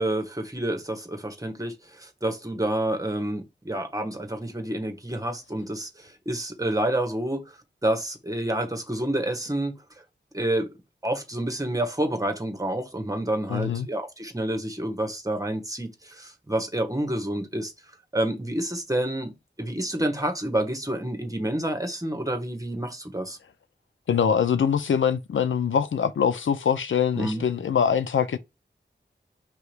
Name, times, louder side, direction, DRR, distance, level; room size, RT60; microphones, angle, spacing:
voice 1, 0.0-7.4 7.8-9.7 10.3-10.7 11.0-17.7 18.1-19.3 19.6-23.4 27.1-27.4, right 1 dB, 15° right, 1.2 m, -28 dB
voice 2, 13.5-13.9 24.1-28.4, left 7 dB, 85° left, 0.4 m, -23 dB
4.7 x 2.8 x 3.2 m
wide cardioid pair, 60°, 19 cm